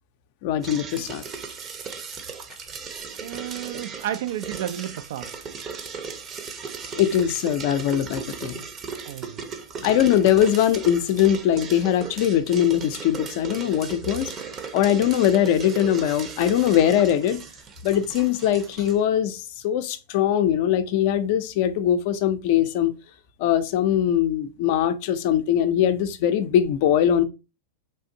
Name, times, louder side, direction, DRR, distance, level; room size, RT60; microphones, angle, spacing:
voice 1, 0.4-1.2 6.9-8.6 9.8-14.3 14.7-17.4 17.8-22.9 23.4-27.2, left 10 dB, 55° left, 0.5 m, -21 dB
sound 1, 0.6-19.0, right 5 dB, 30° right, 0.7 m, -37 dB
voice 2, 3.2-5.3 9.0-9.4 9.8-9.9, right 11 dB, 65° right, 0.3 m, -32 dB
3.4 x 2.5 x 2.7 m
hypercardioid pair, 100°, 0 cm